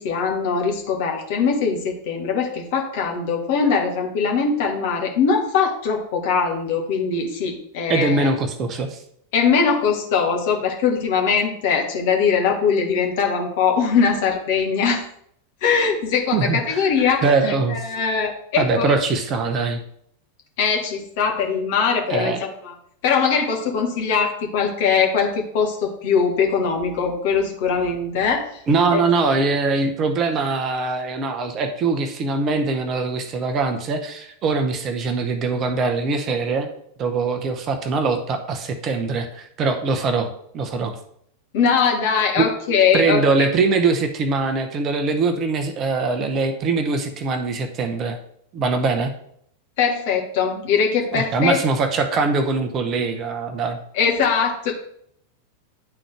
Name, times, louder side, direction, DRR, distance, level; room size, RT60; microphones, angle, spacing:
voice 1, 0.0-8.3 9.3-15.0 15.6-18.9 20.6-22.7 23.0-28.6 28.9-29.0 41.5-43.5 49.8-51.6 53.9-54.7, left 6 dB, 50° left, 1 dB, 1.4 m, -21 dB
voice 2, 7.9-9.0 16.3-16.9 17.2-17.9 18.6-19.8 22.1-22.4 28.7-36.7 37.0-40.9 42.4-42.5 42.9-48.2 48.5-49.1 51.1-53.8, right 4 dB, 30° right, 7 dB, 0.8 m, -22 dB
9.8 x 3.8 x 3.4 m, 0.68 s
figure-of-eight pair, 90°, 0 cm